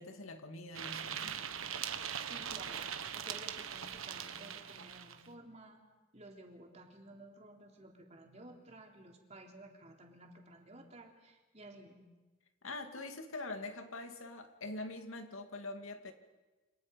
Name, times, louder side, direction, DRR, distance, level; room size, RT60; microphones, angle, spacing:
voice 1, 0.0-1.4 12.6-16.1, left 2 dB, 85° left, 5 dB, 2.4 m, -44 dB
sound 1, 0.7-5.3, right 8 dB, 90° right, 1.4 m, -41 dB
voice 2, 2.2-5.8 6.1-12.0, right 1 dB, 35° right, 1 dB, 3.4 m, -54 dB
29.0 x 26.0 x 5.3 m, 1.2 s
head